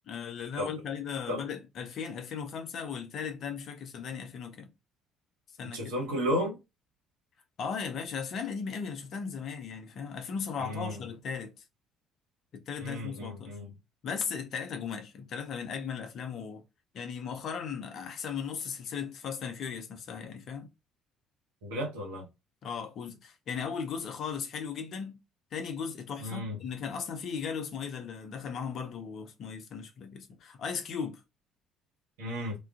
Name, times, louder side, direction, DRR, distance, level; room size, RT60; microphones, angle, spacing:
voice 1, 0.1-4.7 5.6-5.9 7.6-11.5 12.5-13.5 14.0-16.6 16.9-20.7 22.6-25.2 25.5-31.2, left 6 dB, 50° left, 0.6 m, -37 dB
voice 2, 5.7-6.6 10.6-11.0 12.8-13.7 21.6-22.2 26.2-26.6 32.2-32.5, equal, 70° right, 1.0 m, -33 dB
2.3 x 2.2 x 2.4 m
figure-of-eight pair, 50°, 0 cm